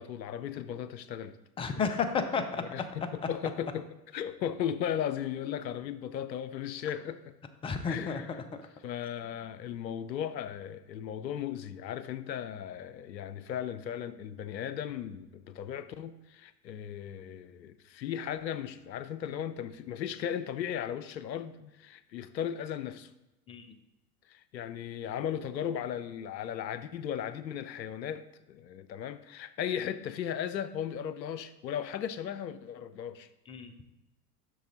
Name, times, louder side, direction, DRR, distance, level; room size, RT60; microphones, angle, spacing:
voice 1, 0.0-1.4 2.7-3.9 4.1-7.3 7.9-8.4 8.8-23.1 24.3-33.3, left 9 dB, 90° left, 13 dB, 0.6 m, -36 dB
voice 2, 1.6-2.6 7.6-8.4 23.5-23.7 33.5-33.7, left 5 dB, 10° left, 9 dB, 0.4 m, -32 dB
7.7 x 6.2 x 3.8 m, 0.97 s
hypercardioid pair, 90°, 50 cm